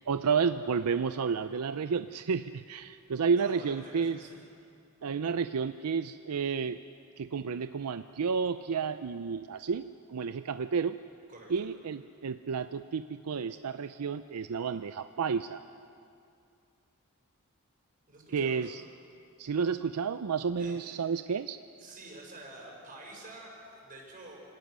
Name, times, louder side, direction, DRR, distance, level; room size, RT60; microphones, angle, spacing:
voice 1, 0.1-4.2 5.0-6.8 7.2-11.0 11.5-15.6 18.3-18.8 19.4-21.6, right 6 dB, 85° right, 11 dB, 0.5 m, -31 dB
voice 2, 3.4-4.4 11.3-11.7 18.1-18.8 20.6-20.8 21.8-24.4, right 2 dB, 40° right, -1 dB, 5.7 m, -48 dB
26.0 x 18.5 x 6.2 m, 2.4 s
head